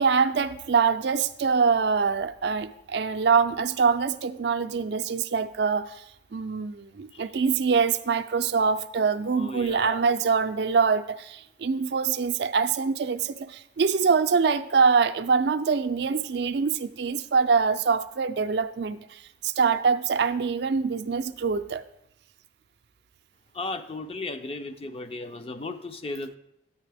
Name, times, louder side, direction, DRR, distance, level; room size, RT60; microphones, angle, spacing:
voice 1, 0.0-6.0 6.3-21.8, right 5 dB, 65° right, 9 dB, 0.4 m, -24 dB
voice 2, 9.3-10.0 23.5-26.4, left 2 dB, 30° left, 8 dB, 0.4 m, -35 dB
9.5 x 9.2 x 3.4 m, 0.80 s
head